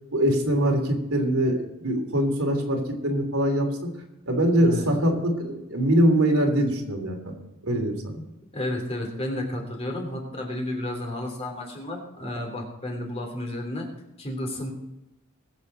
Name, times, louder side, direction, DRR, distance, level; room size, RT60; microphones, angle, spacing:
voice 1, 0.1-3.7 4.3-7.3 7.6-8.2, right 1 dB, 85° right, 1 dB, 3.1 m, -23 dB
voice 2, 8.5-13.9 14.2-14.7, left 1 dB, 30° left, 1 dB, 3.1 m, -32 dB
21.0 x 7.5 x 4.1 m, 0.93 s
head